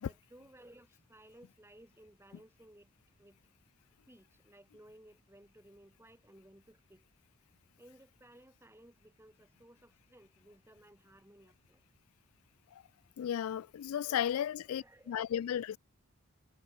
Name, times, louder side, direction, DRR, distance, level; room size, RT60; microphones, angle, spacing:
voice 1, 0.0-2.9 3.2-3.4 4.1-7.1 7.8-11.8 13.8-15.4, right 1 dB, 10° right, 8.0 m, -59 dB
voice 2, 13.2-15.8, left 9 dB, 90° left, 0.3 m, -34 dB
head